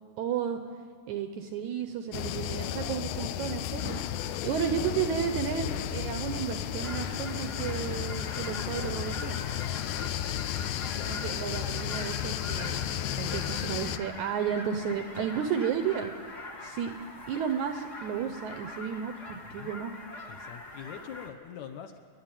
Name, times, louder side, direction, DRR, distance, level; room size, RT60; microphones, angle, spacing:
voice 1, 0.2-0.6 1.1-9.4 11.1-12.8 13.1-16.1 16.6-16.9 17.3-19.9, right 8 dB, 80° right, 7 dB, 1.7 m, -33 dB
sound 1, 2.1-14.0, left 11 dB, 90° left, 1.8 m, -33 dB
sound 2, 6.8-21.3, left 2 dB, 55° left, 0.8 m, -43 dB
voice 2, 9.8-10.1 10.9-11.2 19.4-19.7 20.3-22.0, left 8 dB, 70° left, 7 dB, 1.7 m, -44 dB
29.5 x 11.0 x 8.9 m, 2.1 s
omnidirectional pair, 4.4 m